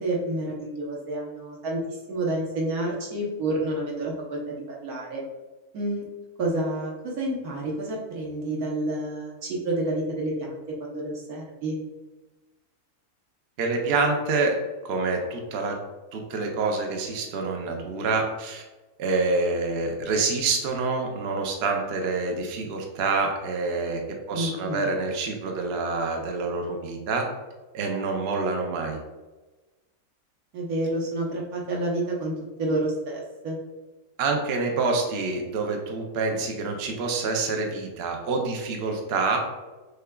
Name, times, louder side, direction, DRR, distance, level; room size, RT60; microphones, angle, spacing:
voice 1, 0.0-5.2 5.7-6.1 6.4-11.8 24.3-24.9 30.5-33.6, right 1 dB, 80° right, -3 dB, 1.4 m, -29 dB
voice 2, 13.6-14.5 14.8-15.8 16.1-18.7 19.0-24.0 24.3-27.3 27.7-29.0 34.2-39.4, right 3 dB, 60° right, 2 dB, 0.7 m, -27 dB
6.6 x 2.3 x 2.3 m, 1.2 s
omnidirectional pair, 1.6 m